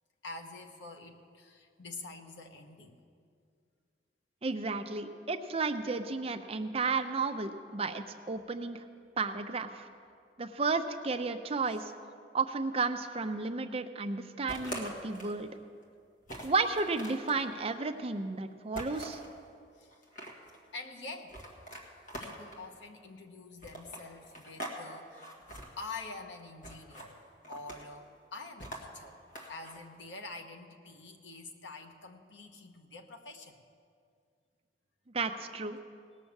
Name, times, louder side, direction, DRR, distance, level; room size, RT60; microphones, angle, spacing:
voice 1, 0.2-3.0 19.7-20.0 20.7-21.4 22.2-25.3 25.8-27.2 27.5-29.2 29.5-33.6, left 3 dB, 85° left, 5 dB, 1.1 m, -46 dB
voice 2, 4.4-8.8 9.2-9.9 10.4-11.9 12.3-15.5 16.4-19.2 35.1-35.8, right 4 dB, 35° right, 7 dB, 0.6 m, -33 dB
sound 1, 14.5-15.4 15.8-15.9 16.3-17.4 18.7-19.3 19.9-20.6 21.3-22.7 23.6-24.8 25.1-25.7 26.6-27.1 27.4-28.0 28.6-29.8, right 1 dB, 45° left, 1.8 m, -43 dB
18.5 x 6.4 x 7.2 m, 2.3 s
head